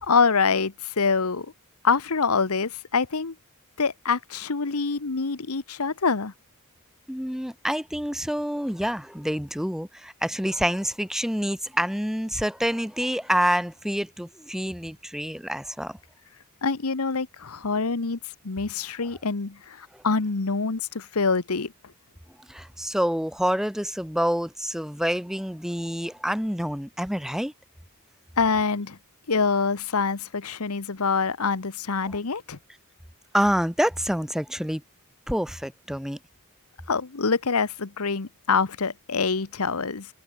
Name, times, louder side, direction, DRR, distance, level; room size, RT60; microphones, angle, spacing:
voice 1, 0.0-1.5 1.8-3.3 3.8-6.3 16.6-18.2 18.4-21.7 28.4-29.0 29.3-32.6 36.9-40.1, left 4 dB, 80° left, 1.1 m, -25 dB
voice 2, 7.1-16.0 19.9-20.0 22.5-27.5 33.3-34.8 35.3-36.2, equal, ahead, 1.9 m, -27 dB
head